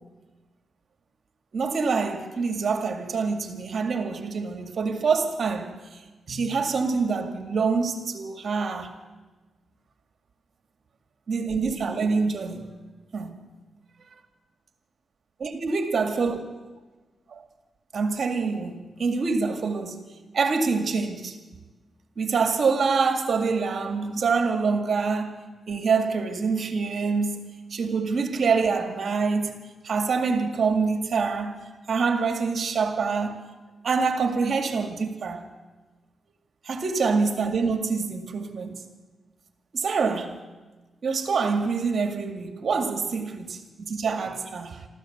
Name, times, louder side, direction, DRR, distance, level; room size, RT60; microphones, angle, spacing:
voice 1, 1.5-5.8 6.3-8.9 11.3-12.7 13.1-13.4 15.4-16.4 17.3-17.4 17.9-20.0 20.3-21.4 22.2-25.4 25.7-27.4 27.7-29.6 29.8-31.6 31.9-33.4 33.8-35.4 36.6-38.8 39.7-40.4 41.0-44.9, right 4 dB, 60° right, 2.2 m, -26 dB
25.0 x 14.0 x 8.0 m
cardioid pair, 60°, 0 cm